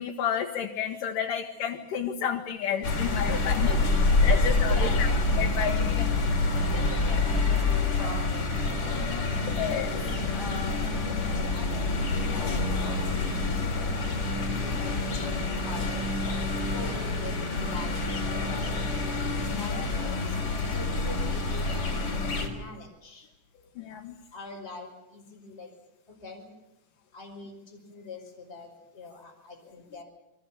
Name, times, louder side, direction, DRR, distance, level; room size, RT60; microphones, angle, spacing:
voice 1, 0.0-3.7 4.2-6.0 8.9-10.0 19.5-19.9 23.8-24.2, left 8 dB, 85° left, 1 dB, 3.1 m, -31 dB
sound 1, 2.8-22.5, left 3 dB, 45° left, 4.6 m, -27 dB
voice 2, 3.3-5.2 5.7-6.1 6.6-9.4 9.9-10.8 11.1-12.7 13.0-14.2 14.6-16.3 16.7-18.0 18.5-18.8 19.5-19.8 20.7-23.3 24.3-25.7 26.2-26.5 27.1-30.0, left 3 dB, 20° left, 0 dB, 5.4 m, -43 dB
29.0 x 24.0 x 7.0 m, 0.92 s
omnidirectional pair, 3.6 m